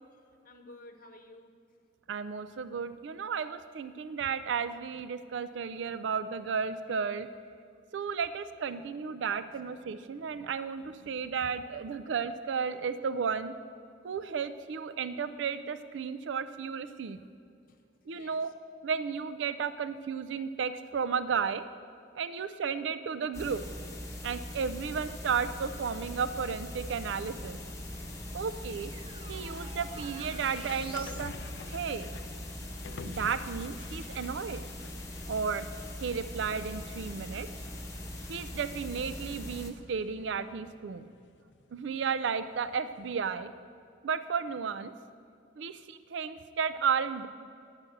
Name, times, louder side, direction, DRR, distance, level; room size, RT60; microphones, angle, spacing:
voice 1, 0.4-1.5 11.7-12.0 17.7-17.8 18.1-18.5 28.2-28.4, left 2 dB, 45° left, 6 dB, 0.9 m, -54 dB
voice 2, 2.1-7.3 7.9-13.5 14.0-17.2 18.1-18.5 18.8-21.6 22.2-23.6 24.2-27.6 28.3-28.9 29.3-31.3 31.7-32.1 33.0-34.6 35.3-35.7 36.0-37.5 38.3-41.1 41.7-43.5 44.0-44.9 45.6-47.3, right 6 dB, 75° right, 12 dB, 0.4 m, -33 dB
sound 1, 23.3-39.7, left 1 dB, 15° left, 0.9 m, -41 dB
sound 2, 27.2-43.2, left 5 dB, 65° left, 0.4 m, -52 dB
sound 3, 27.4-31.3, right 2 dB, 25° right, 0.8 m, -50 dB
10.5 x 6.0 x 7.8 m, 2.4 s
head